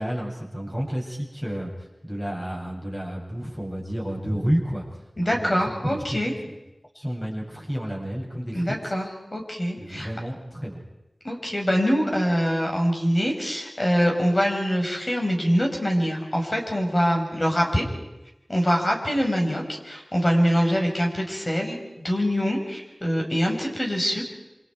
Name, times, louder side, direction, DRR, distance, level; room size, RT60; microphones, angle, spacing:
voice 1, 0.0-1.7 2.0-4.8 5.2-5.6 5.8-6.3 6.9-8.9 9.8-10.8, equal, 10° left, -2 dB, 7.2 m, -30 dB
voice 2, 5.2-6.3 8.5-10.1 11.2-17.8 18.5-21.8 22.0-24.2, equal, 35° left, 1 dB, 5.4 m, -24 dB
28.0 x 26.5 x 4.7 m, 0.96 s
wide cardioid pair, 65°, 0 cm